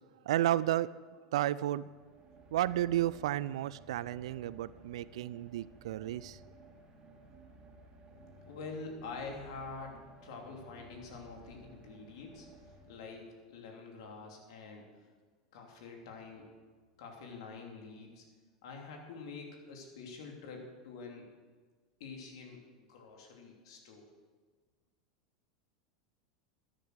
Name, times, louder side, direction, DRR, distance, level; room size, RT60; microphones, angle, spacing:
voice 1, 0.3-0.9 1.3-1.8 2.5-6.4, right 13 dB, 70° right, 18 dB, 0.4 m, -32 dB
sound 1, 1.7-13.5, right 2 dB, 30° right, 3.0 m, -57 dB
voice 2, 8.4-15.0 15.5-16.5 17.0-18.2 18.6-21.3 22.0-24.1, left 4 dB, 70° left, 1 dB, 3.0 m, -46 dB
12.5 x 10.5 x 6.4 m, 1.5 s
hypercardioid pair, 90°, 3 cm